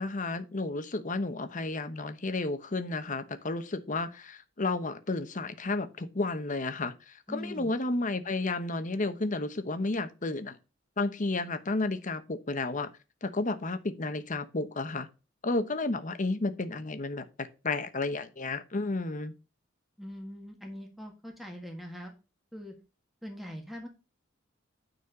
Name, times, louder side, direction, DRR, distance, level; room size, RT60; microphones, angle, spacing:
voice 1, 0.0-6.9 7.3-10.5 11.0-12.9 13.2-15.1 15.4-19.3, left 2 dB, 40° left, 1.0 m, -32 dB
voice 2, 7.3-7.7 20.0-22.1 22.5-22.7 23.2-23.9, equal, ahead, 1.6 m, -42 dB
9.7 x 4.3 x 5.3 m
head